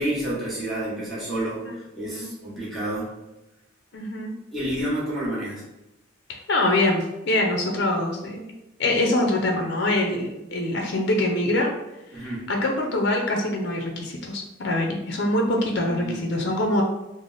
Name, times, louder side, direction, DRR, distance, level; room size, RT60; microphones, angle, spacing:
voice 1, 0.0-3.1 4.5-5.6 12.1-12.5 15.8-16.5, right 1 dB, ahead, -9 dB, 1.1 m, -29 dB
voice 2, 3.9-4.3 6.3-8.5 8.8-11.7 12.1-16.8, left 1 dB, 55° left, 1 dB, 0.5 m, -24 dB
3.3 x 2.0 x 3.9 m, 0.94 s
head